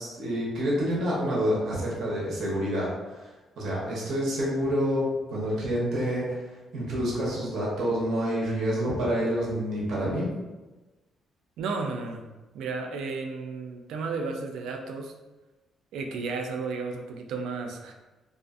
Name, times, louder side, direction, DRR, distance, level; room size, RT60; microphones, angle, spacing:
voice 1, 0.0-10.3, equal, 70° right, -5 dB, 0.9 m, -28 dB
voice 2, 11.6-15.1 15.9-17.9, right 4 dB, 85° right, 4 dB, 0.3 m, -33 dB
2.4 x 2.4 x 2.4 m, 1.1 s
cardioid pair, 90°, 0 cm